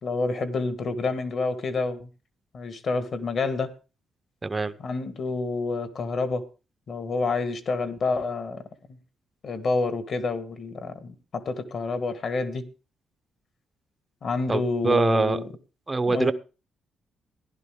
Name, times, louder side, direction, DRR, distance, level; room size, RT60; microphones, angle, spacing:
voice 1, 0.0-2.1 2.5-3.7 4.8-6.4 6.9-8.6 9.4-12.6 14.2-15.5 16.1-16.3, left 3 dB, 40° left, 1.5 m, -28 dB
voice 2, 4.4-4.7 14.5-15.4 15.9-16.3, right 3 dB, 15° right, 0.6 m, -23 dB
15.0 x 11.5 x 3.7 m
cardioid pair, 155°, 0 cm